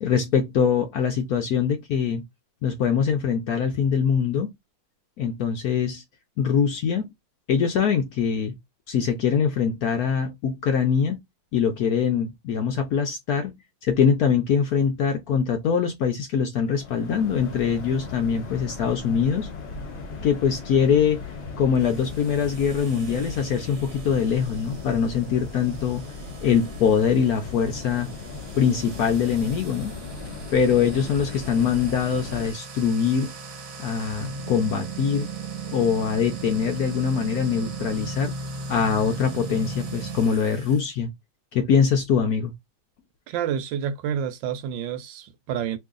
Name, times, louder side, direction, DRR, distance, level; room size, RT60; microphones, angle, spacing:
voice 1, 0.0-2.2 2.6-4.5 5.2-6.0 6.4-7.1 7.5-8.5 8.9-11.2 11.5-13.5 13.8-19.5 20.2-21.2 21.6-26.0 26.4-28.1 28.6-29.9 30.5-33.3 33.8-35.3 35.7-38.3 38.7-41.1 41.5-42.5, left 7 dB, 75° left, 0.8 m, -23 dB
sound 1, 16.6-32.5, left 4 dB, 40° left, 0.9 m, -37 dB
sound 2, 21.8-40.9, right 4 dB, 60° right, 0.9 m, -38 dB
voice 2, 43.3-45.8, right 8 dB, 75° right, 1.2 m, -29 dB
3.0 x 2.6 x 3.6 m
omnidirectional pair, 2.3 m